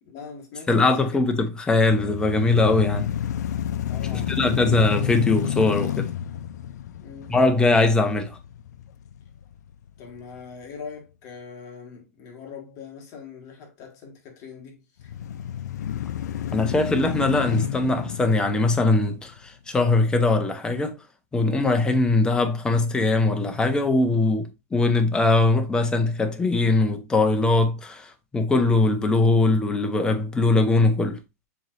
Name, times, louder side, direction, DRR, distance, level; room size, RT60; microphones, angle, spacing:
voice 1, 0.0-1.2 3.9-4.8 7.0-7.3 10.0-15.1, left 6 dB, 35° left, 1.5 m, -42 dB
voice 2, 0.7-3.1 4.1-6.1 7.3-8.4 16.5-21.0 21.3-31.2, left 3 dB, 10° left, 0.6 m, -21 dB
sound 1, 1.7-9.9 10.4-10.5 15.0-19.5, left 10 dB, 85° left, 0.4 m, -30 dB
7.0 x 3.0 x 2.5 m
hypercardioid pair, 145°, 9 cm